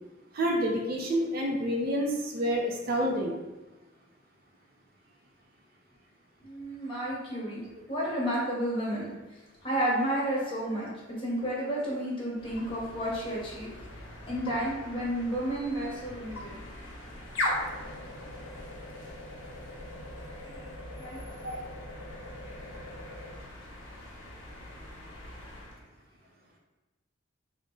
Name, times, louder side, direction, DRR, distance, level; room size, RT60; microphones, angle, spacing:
voice 1, 0.3-3.4 21.4-21.6, equal, 45° right, -1 dB, 0.5 m, -28 dB
voice 2, 6.4-7.6 7.9-9.1 9.6-10.9 11.2-13.7 14.3-16.6 20.6-20.7 21.0-21.2, right 1 dB, 25° left, -6 dB, 1.0 m, -31 dB
sound 1, 12.4-25.8, left 1 dB, 75° left, 0.9 m, -40 dB
3.6 x 2.1 x 3.7 m, 1.1 s
head